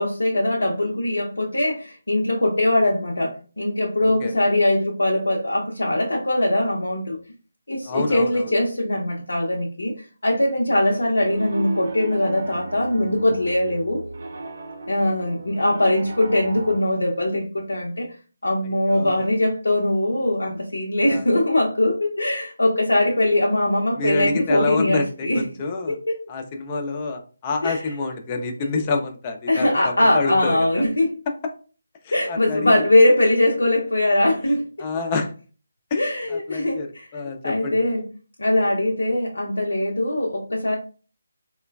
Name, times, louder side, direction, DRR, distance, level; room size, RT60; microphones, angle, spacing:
voice 1, 0.0-7.2 7.7-9.9 10.2-14.0 14.9-18.1 18.4-25.5 25.9-26.2 27.6-27.9 29.5-31.1 32.1-34.6 36.0-37.1 37.4-38.1 38.4-40.8, left 1 dB, 80° left, -2 dB, 0.6 m, -21 dB
voice 2, 7.9-8.5 18.6-19.2 21.1-21.2 24.0-26.0 26.3-30.8 32.3-32.7 34.8-35.3 35.9-36.0 36.3-36.9 37.1-37.7, left 3 dB, 25° left, 3 dB, 0.4 m, -27 dB
Piano, 11.2-16.8, right 2 dB, 55° right, 0.5 m, -35 dB
3.0 x 2.1 x 2.3 m, 0.37 s
figure-of-eight pair, 155°, 0 cm